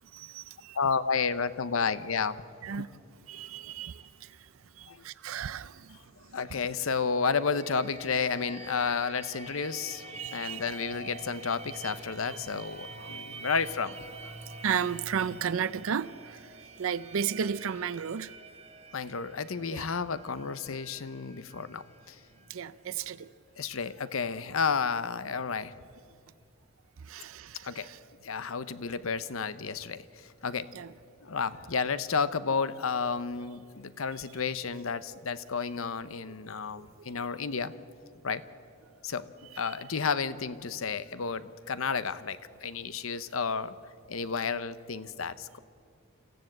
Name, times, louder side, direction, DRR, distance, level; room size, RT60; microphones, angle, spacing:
voice 1, 0.1-0.8 2.6-2.9 3.3-4.5 4.8-6.4 10.1-10.6 12.3-12.6 12.9-13.5 14.5-18.3 19.7-19.9 22.5-23.3 27.0-28.0 30.7-30.9 36.3-36.4 36.7-37.1 39.6-39.7, right 7 dB, 75° right, 15 dB, 0.5 m, -35 dB
voice 2, 0.7-2.4 4.9-5.0 6.3-10.0 10.3-14.0 18.9-22.1 23.6-25.7 27.6-27.9 28.2-30.0 30.4-30.7 31.2-37.7 38.2-38.4 39.0-43.7 44.1-45.6, left 5 dB, 80° left, 14 dB, 0.8 m, -31 dB
sound 1, 7.6-23.2, right 2 dB, 30° right, 1.6 m, -47 dB
26.0 x 15.0 x 7.8 m, 2.2 s
head